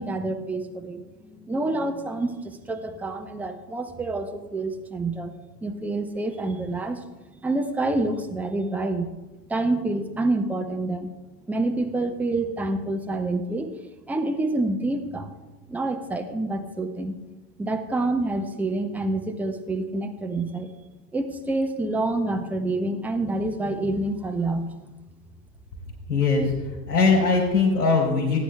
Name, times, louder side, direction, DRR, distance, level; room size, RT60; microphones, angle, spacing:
voice 1, 0.0-5.4 5.6-7.1 7.4-9.1 9.5-11.1 11.5-13.7 14.1-15.3 15.7-17.1 17.6-20.7 21.1-24.7, right 2 dB, 5° right, 5 dB, 0.5 m, -27 dB
voice 2, 26.1-28.4, left 4 dB, 65° left, -7 dB, 3.7 m, -21 dB
18.5 x 9.9 x 2.2 m, 1.2 s
figure-of-eight pair, 85°, 49 cm